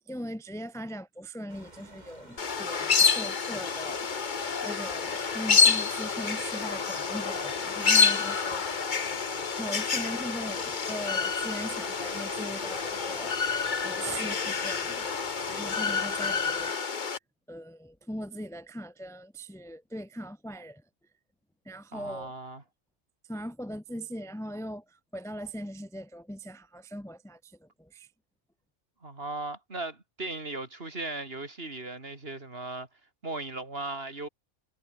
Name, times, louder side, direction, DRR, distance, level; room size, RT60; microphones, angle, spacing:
voice 1, 0.1-4.2 4.6-9.2 9.6-13.4 13.8-15.1 15.5-17.2 17.5-20.8 21.6-22.3 23.2-28.1, equal, 5° left, 0.8 m, -40 dB
sound 1, 1.5-16.7, right 1 dB, 35° right, 8.1 m, -48 dB
sound 2, 2.4-17.2, left 5 dB, 40° left, 1.2 m, -28 dB
voice 2, 21.9-22.6 29.0-32.9 33.2-34.3, right 2 dB, 50° right, 3.7 m, -37 dB
omnidirectional pair, 1.3 m